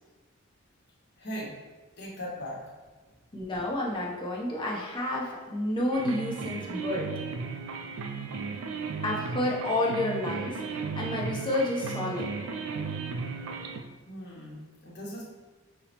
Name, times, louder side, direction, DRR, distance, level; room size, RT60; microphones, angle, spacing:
voice 1, 1.2-1.7 2.0-2.7 14.1-15.2, equal, 50° left, -4 dB, 1.0 m, -39 dB
voice 2, 3.3-7.1 9.0-12.3, left 1 dB, 25° left, -3 dB, 0.6 m, -30 dB
sound 1, 5.9-13.8, right 5 dB, 75° right, 0.4 m, -35 dB
5.4 x 2.0 x 2.9 m, 1.3 s
head